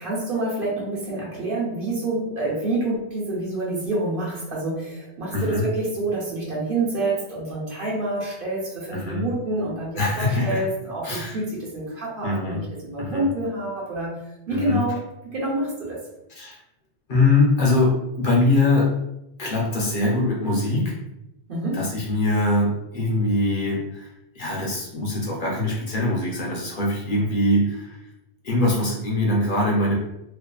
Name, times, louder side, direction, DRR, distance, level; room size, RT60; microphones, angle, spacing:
voice 1, 0.0-14.1 14.5-15.1 15.3-16.0 21.5-21.9, right 2 dB, 60° right, -5 dB, 0.9 m, -27 dB
voice 2, 5.3-5.7 8.9-9.3 10.0-10.6 11.0-11.4 12.2-12.6 13.0-13.3 14.5-14.8 16.4-16.6 17.1-18.9 19.4-21.0 21.7-24.1 24.4-28.0 28.4-30.0, left 2 dB, 55° left, -3 dB, 0.8 m, -22 dB
2.5 x 2.4 x 2.2 m, 0.86 s
omnidirectional pair, 1.1 m